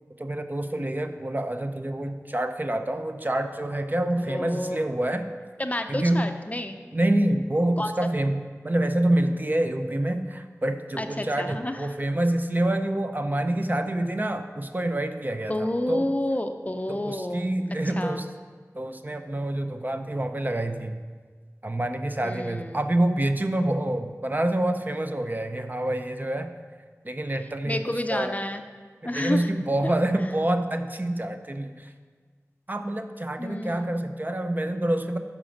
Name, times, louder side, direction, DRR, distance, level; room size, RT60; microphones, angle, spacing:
voice 1, 0.2-5.3 5.9-6.3 6.9-16.1 16.9-18.3 18.7-21.0 21.6-26.5 27.0-28.4 29.0-31.9 32.7-35.2, right 1 dB, 35° right, 7 dB, 0.4 m, -27 dB
voice 2, 4.2-4.8 5.6-6.8 7.8-7.9 11.0-11.8 15.5-17.5 18.0-18.2 22.2-22.7 27.6-28.6 29.0-29.5 29.8-29.9 33.4-34.0, left 1 dB, 25° left, 7 dB, 0.5 m, -29 dB
6.2 x 5.8 x 5.1 m, 1.5 s
wide cardioid pair, 45°, 6 cm